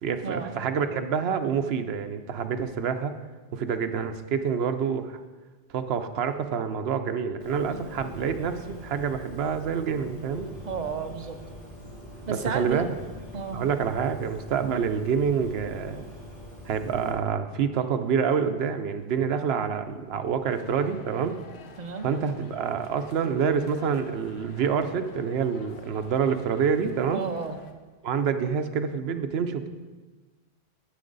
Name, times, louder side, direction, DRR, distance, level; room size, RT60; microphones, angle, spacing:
voice 1, 0.0-3.1 3.5-5.2 5.7-10.5 12.3-12.9 13.5-16.1 16.6-21.4 22.0-27.2 28.0-29.7, right 6 dB, 75° right, 8 dB, 0.9 m, -27 dB
Bird, 7.4-17.1, equal, 55° left, 3.3 m, -43 dB
voice 2, 10.6-11.4 12.3-12.9 13.3-13.6 21.8-22.1 27.1-27.6, right 5 dB, 50° right, 7 dB, 0.8 m, -32 dB
sound 1, 20.5-27.7, left 5 dB, 80° left, 1.0 m, -50 dB
9.9 x 8.5 x 3.9 m, 1.3 s
omnidirectional pair, 1.1 m